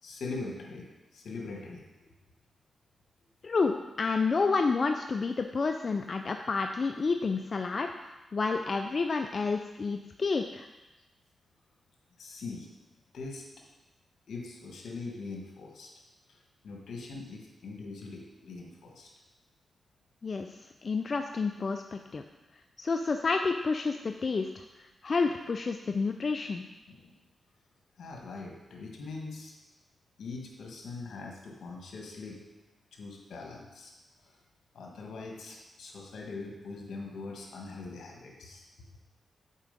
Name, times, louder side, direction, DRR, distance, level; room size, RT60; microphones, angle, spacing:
voice 1, 0.0-0.9 1.1-2.1 12.2-12.7 13.1-13.5 14.3-15.9 16.3-16.4 16.6-19.1 26.9-27.2 28.0-29.5 30.2-32.4 32.9-33.9 34.2-34.4 34.7-38.6, left 3 dB, 85° left, 0 dB, 1.5 m, -42 dB
voice 2, 3.4-10.7 20.2-22.2 22.8-24.6 25.0-26.6, left 4 dB, 50° left, 5 dB, 0.4 m, -30 dB
7.4 x 4.7 x 5.1 m, 1.1 s
cardioid pair, 70°, 0 cm